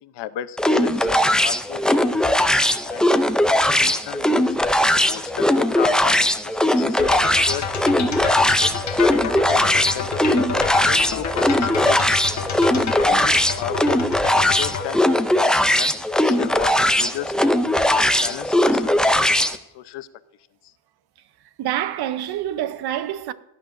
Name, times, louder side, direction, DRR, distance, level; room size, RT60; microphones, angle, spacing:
voice 1, 0.0-2.5 2.8-3.0 3.5-4.6 5.1-7.6 7.9-8.8 9.2-10.4 10.9-12.0 12.4-12.7 12.9-14.1 14.4-15.1 15.3-17.3 17.8-19.3 19.7-20.1, left 12 dB, 75° left, 0.8 m, -34 dB
sound 1, 0.6-19.6, left 1 dB, ahead, 0.4 m, -19 dB
sound 2, 7.0-14.9, left 6 dB, 40° left, 1.3 m, -29 dB
voice 2, 21.6-23.3, right 12 dB, 65° right, 0.8 m, -26 dB
17.5 x 11.5 x 2.6 m
cardioid pair, 165°, 41 cm